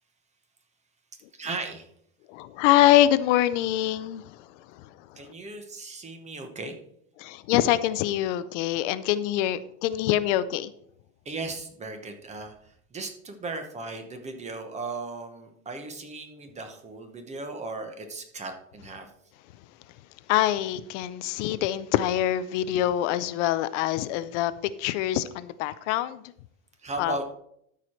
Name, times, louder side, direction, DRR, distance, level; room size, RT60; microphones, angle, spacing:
voice 1, 1.3-1.9 5.2-6.8 11.2-12.5 12.9-19.1 26.8-27.2, right 3 dB, 20° right, 6 dB, 1.0 m, -36 dB
voice 2, 2.3-4.2 7.2-10.7 20.3-24.5 24.8-26.2 27.0-27.2, left 13 dB, 70° left, 15 dB, 0.6 m, -24 dB
13.0 x 4.9 x 4.4 m, 0.71 s
supercardioid pair, 150°, 38 cm